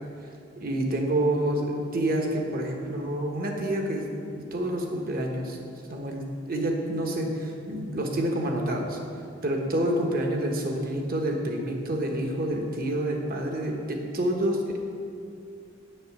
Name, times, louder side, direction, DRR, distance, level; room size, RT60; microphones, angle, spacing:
voice 1, 0.6-5.6 5.9-9.0 9.4-14.8, right 1 dB, 50° right, 2 dB, 1.3 m, -28 dB
8.0 x 6.2 x 8.1 m, 2.4 s
head